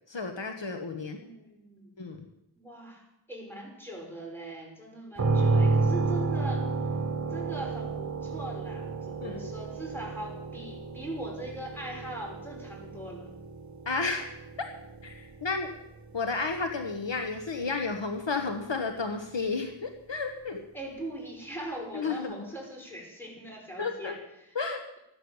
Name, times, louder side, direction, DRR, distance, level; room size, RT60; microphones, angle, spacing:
voice 1, 0.1-1.2 2.0-2.3 9.2-9.5 13.8-14.3 15.0-15.7 16.1-20.6 21.9-22.3 23.8-24.1 24.5-24.8, left 4 dB, 65° left, 5 dB, 1.4 m, -32 dB
voice 2, 1.2-1.9 2.6-3.0 3.3-6.6 7.3-13.3 20.7-24.5, right 1 dB, 5° left, -1 dB, 5.5 m, -40 dB
sound 1, 5.2-18.9, right 3 dB, 35° right, 1.8 m, -32 dB
13.5 x 12.0 x 7.2 m, 0.83 s
wide cardioid pair, 65°, 48 cm